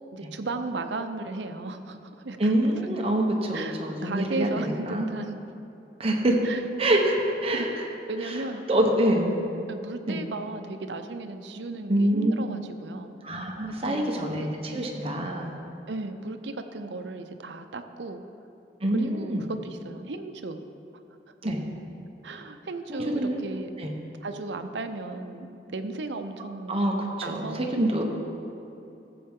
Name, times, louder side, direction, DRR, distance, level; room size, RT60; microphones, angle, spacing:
voice 1, 0.1-3.0 3.5-5.4 6.4-6.6 7.5-7.7 8.1-13.1 13.8-14.9 15.9-18.2 18.9-20.6 22.2-23.7 24.2-26.8 27.2-27.7, right 3 dB, 85° right, 8 dB, 0.7 m, -35 dB
voice 2, 2.4-5.1 6.0-6.5 6.8-7.8 8.2-8.4 8.7-9.3 10.1-10.2 11.9-12.3 13.2-15.5 18.8-19.4 21.4-21.6 22.3-22.4 22.9-23.4 23.8-23.9 26.7-28.0, right 1 dB, 35° right, 1 dB, 1.2 m, -26 dB
15.5 x 7.7 x 3.7 m, 2.8 s
head